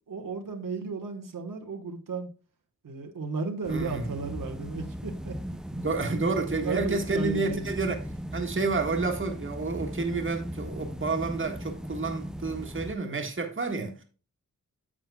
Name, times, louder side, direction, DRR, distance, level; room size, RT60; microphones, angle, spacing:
voice 1, 0.1-2.3 2.8-5.4 5.7-5.8 6.6-7.8, right 4 dB, 85° right, 1.4 m, -34 dB
sound 1, 3.6-12.9, equal, ahead, 0.5 m, -38 dB
voice 2, 3.7-4.1 5.8-8.0 8.3-14.0, right 3 dB, 40° right, 1.6 m, -30 dB
9.8 x 7.7 x 2.3 m
wide cardioid pair, 120°, 32 cm